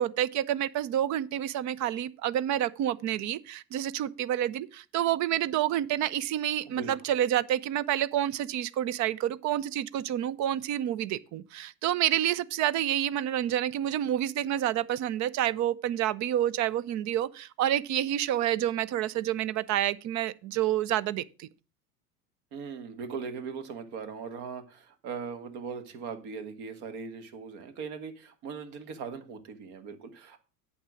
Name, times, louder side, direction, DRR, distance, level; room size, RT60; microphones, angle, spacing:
voice 1, 0.0-21.5, right 12 dB, 40° right, 0.6 m, -28 dB
voice 2, 22.5-30.4, right 5 dB, 55° right, 1.8 m, -39 dB
8.7 x 6.0 x 6.3 m
hypercardioid pair, 85°, 46 cm